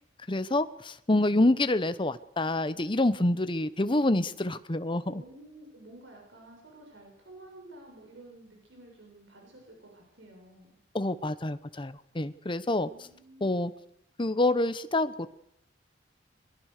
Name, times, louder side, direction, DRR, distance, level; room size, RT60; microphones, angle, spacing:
voice 1, 0.3-5.2 10.9-12.9 13.4-13.7 14.2-15.3, left 2 dB, 25° left, 12 dB, 1.0 m, -27 dB
voice 2, 5.0-10.8 12.8-13.5, right 1 dB, 80° right, 1 dB, 6.8 m, -51 dB
22.0 x 21.5 x 6.7 m, 0.73 s
head